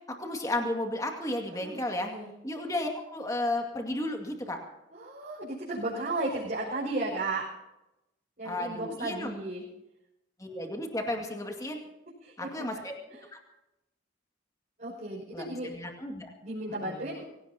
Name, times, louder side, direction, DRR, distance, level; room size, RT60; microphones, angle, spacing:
voice 1, 0.2-2.1 2.4-4.6 8.4-9.4 10.4-11.8 12.4-12.9 13.3-13.4 15.3-16.3 16.8-17.0, left 1 dB, 20° left, 3 dB, 2.1 m, -33 dB
voice 2, 1.5-2.3 4.9-7.5 8.4-9.6 12.2-12.8 13.1-13.2 14.8-15.7 16.4-17.2, right 2 dB, 45° right, -7 dB, 6.0 m, -34 dB
24.5 x 17.0 x 2.9 m, 0.92 s
head